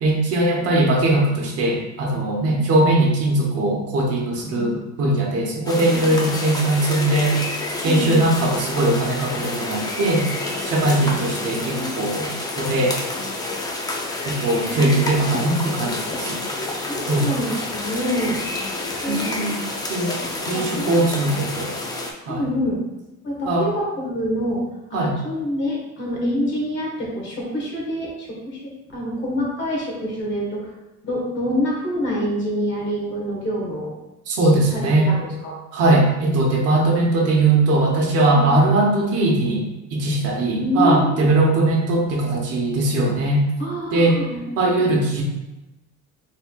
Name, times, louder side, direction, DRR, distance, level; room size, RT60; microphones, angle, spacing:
voice 1, 0.0-7.4 7.8-10.2 10.6-12.3 12.6-13.0 14.2-16.4 17.0-17.3 19.1-19.6 19.9-21.7 22.3-22.5 23.4-23.7 24.9-25.1 34.3-35.1 35.7-43.4 43.9-44.2 44.6-45.2, right 2 dB, 55° right, -1 dB, 0.9 m, -20 dB
voice 2, 4.4-4.8 5.9-6.1 7.8-8.3 11.0-11.2 11.5-11.9 14.5-14.9 16.5-18.4 19.0-19.7 20.3-21.0 22.3-22.8 23.2-24.6 24.9-30.6 31.0-33.9 34.4-35.5 38.3-38.4 40.5-41.3 43.6-44.4, equal, 40° left, -3 dB, 1.4 m, -27 dB
sound 1, 5.7-22.1, left 2 dB, 15° left, 0.3 m, -29 dB
4.2 x 3.5 x 2.3 m, 0.99 s
cardioid pair, 155°, 29 cm